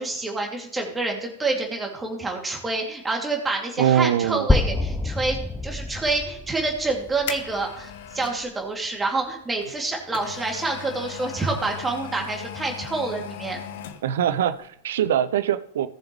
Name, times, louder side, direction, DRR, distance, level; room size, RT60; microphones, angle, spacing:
voice 1, 0.0-5.4 5.6-13.6, right 3 dB, 15° right, 1 dB, 2.6 m, -27 dB
voice 2, 3.8-4.5 14.0-15.9, right 10 dB, 60° right, 15 dB, 0.6 m, -22 dB
sound 1, 4.5-8.4, left 2 dB, 10° left, 0.7 m, -27 dB
sound 2, 6.7-8.4 9.6-14.3 14.6-14.7, left 9 dB, 55° left, 1.0 m, -38 dB
18.0 x 7.1 x 3.2 m, 0.76 s
figure-of-eight pair, 90°, 0 cm